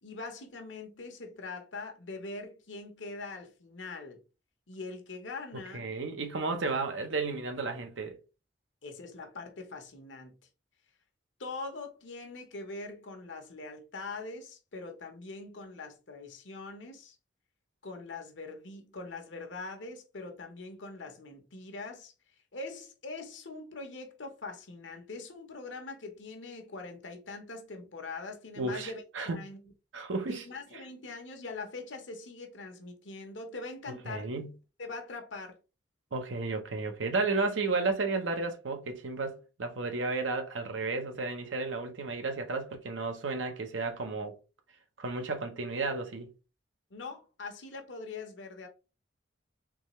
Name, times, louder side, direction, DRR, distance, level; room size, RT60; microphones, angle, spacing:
voice 1, 0.0-4.2 4.7-5.9 8.8-10.4 11.4-17.1 17.8-22.1 22.5-29.6 30.3-34.3 34.8-35.6 46.9-48.7, left 3 dB, 75° left, 1.0 m, -42 dB
voice 2, 5.5-8.2 28.6-29.5 29.9-30.5 30.7-30.8 34.0-34.6 36.1-44.4 45.0-46.3, right 3 dB, 80° right, 0.8 m, -33 dB
3.6 x 3.3 x 3.1 m
head